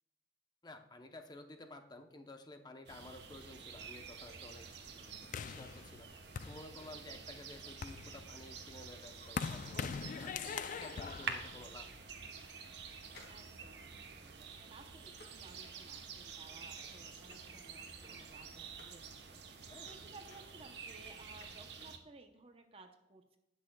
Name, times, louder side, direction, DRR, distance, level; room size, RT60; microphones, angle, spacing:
voice 1, 0.6-6.1 6.5-12.1 18.0-18.3 19.7-19.9, left 2 dB, 25° left, 6 dB, 0.8 m, -53 dB
sound 1, 2.9-22.0, right 5 dB, 65° right, 1.0 m, -49 dB
sound 2, 5.3-7.1 7.6-12.2, left 6 dB, 45° left, 0.3 m, -43 dB
voice 2, 7.5-8.1 13.3-23.4, right 3 dB, 35° right, 5 dB, 0.7 m, -59 dB
sound 3, 13.1-19.0 19.4-22.0 22.3-22.4, left 2 dB, 75° left, 2.2 m, -63 dB
18.5 x 6.2 x 2.3 m, 0.93 s
head